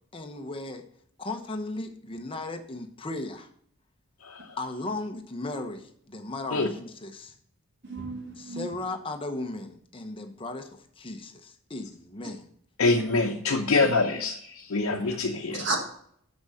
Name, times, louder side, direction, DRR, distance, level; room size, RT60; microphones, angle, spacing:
voice 1, 0.1-0.9 1.2-3.5 4.6-7.3 8.4-12.5, left 2 dB, 25° left, 5 dB, 0.9 m, -36 dB
voice 2, 4.2-4.6 6.5-6.7 12.8-15.7, left 3 dB, 90° left, 1 dB, 0.8 m, -25 dB
voice 3, 7.8-8.7 12.8-12.9 13.8-13.9 15.0-15.2 15.5-15.8, right 3 dB, 55° right, 2 dB, 1.5 m, -33 dB
6.2 x 6.1 x 6.6 m, 0.65 s
head